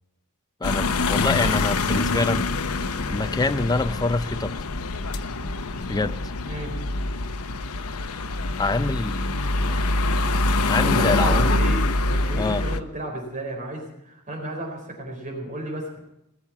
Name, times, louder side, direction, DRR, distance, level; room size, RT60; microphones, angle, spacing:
sound 1, 0.6-12.8, left 2 dB, 85° left, 0.9 m, -25 dB
voice 1, 0.6-2.5 3.1-4.5 5.9-6.2 8.6-9.2 9.6-10.0 10.7-11.5 12.4-12.6, left 3 dB, 20° left, 12 dB, 0.5 m, -25 dB
voice 2, 6.4-6.7 10.8-16.1, right 1 dB, 35° right, 1 dB, 4.2 m, -33 dB
19.5 x 7.3 x 8.4 m, 0.83 s
head